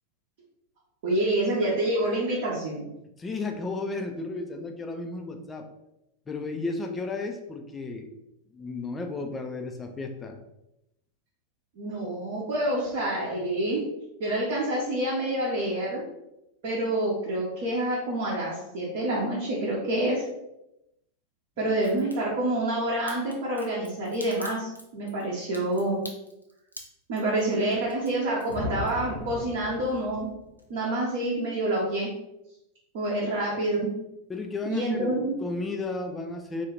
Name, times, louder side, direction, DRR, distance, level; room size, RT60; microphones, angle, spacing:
voice 1, 1.0-2.9 11.8-13.8 14.2-16.0 16.6-20.2 21.6-26.0 27.1-30.3 30.7-32.1 32.9-33.9 34.7-35.4, right 1 dB, 50° right, -5 dB, 0.7 m, -27 dB
voice 2, 3.2-5.7 6.3-8.1 8.5-10.4 33.2-33.3 34.3-36.7, left 3 dB, 15° left, 4 dB, 0.4 m, -33 dB
Crack, 21.8-22.2 23.1-29.3 29.6-30.3 30.6-30.7, equal, 90° left, 0.4 m, -45 dB
sound 1, 28.5-30.5, left 2 dB, 70° left, 1.1 m, -36 dB
2.7 x 2.3 x 3.3 m, 0.88 s
figure-of-eight pair, 90°, 0 cm